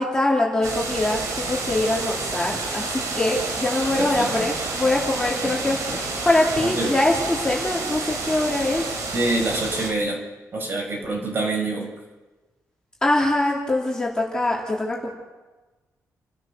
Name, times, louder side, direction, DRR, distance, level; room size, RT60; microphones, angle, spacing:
voice 1, 0.0-8.8 13.0-15.1, left 2 dB, 10° left, -3 dB, 3.2 m, -23 dB
sound 1, 0.6-9.9, right 3 dB, 65° right, 3.7 m, -29 dB
voice 2, 4.0-4.3 5.3-6.0 6.6-6.9 9.1-10.2 10.5-11.9, right 2 dB, 40° right, 0 dB, 5.8 m, -26 dB
30.0 x 13.0 x 6.8 m, 1.2 s
wide cardioid pair, 160°, 6 cm